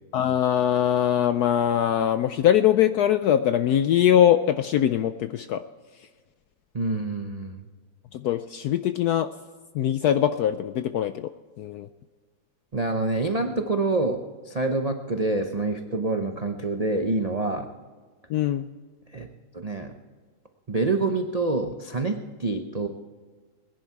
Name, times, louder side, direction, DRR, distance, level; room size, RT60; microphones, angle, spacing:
voice 1, 0.1-5.6 8.1-9.3 9.7-11.3 11.6-11.9 18.3-18.7, left 10 dB, 75° left, 11 dB, 0.8 m, -22 dB
voice 2, 6.7-7.6 12.7-17.7 19.1-19.3 19.5-19.9 20.7-22.9, right 2 dB, 75° right, 4 dB, 0.3 m, -26 dB
20.5 x 10.5 x 4.6 m, 1.5 s
omnidirectional pair, 2.1 m